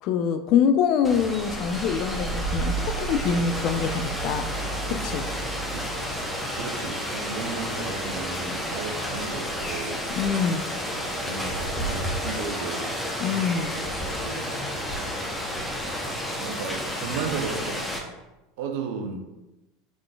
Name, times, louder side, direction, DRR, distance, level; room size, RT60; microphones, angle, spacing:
voice 1, 0.0-4.5 4.9-5.2 10.1-10.7 13.2-13.7, left 7 dB, 55° left, 8 dB, 0.4 m, -25 dB
Rain, 1.0-18.0, equal, 5° left, 0.9 m, -31 dB
sound 1, 1.4-10.6, right 5 dB, 25° right, 0.4 m, -36 dB
voice 2, 6.5-10.0 11.2-13.0 13.8-13.9 14.2-14.5 15.7-17.9 18.6-19.2, right 5 dB, 65° right, 4 dB, 0.6 m, -35 dB
5.0 x 3.7 x 2.3 m, 1.0 s
hypercardioid pair, 80°, 0 cm